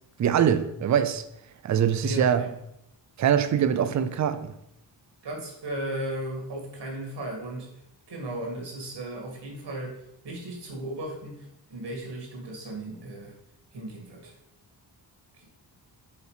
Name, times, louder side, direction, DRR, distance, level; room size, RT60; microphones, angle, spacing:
voice 1, 0.2-1.2 1.6-2.4 3.2-4.5, right 8 dB, 40° right, 0.5 m, -23 dB
voice 2, 2.0-2.6 5.2-9.9 10.2-13.3 13.7-14.4 15.3-15.4, right 1 dB, 65° right, 2.1 m, -36 dB
5.1 x 4.8 x 4.8 m
wide cardioid pair, 145°, 44 cm